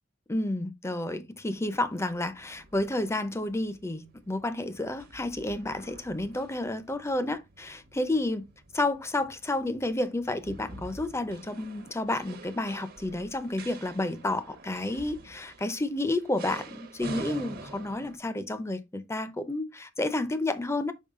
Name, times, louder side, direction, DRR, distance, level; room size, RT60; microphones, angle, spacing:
voice 1, 0.3-8.4 8.7-20.9, left 2 dB, 15° left, 0.6 m, -31 dB
sound 1, 1.5-18.2, right 2 dB, 50° right, 1.0 m, -48 dB
5.5 x 4.7 x 3.6 m
head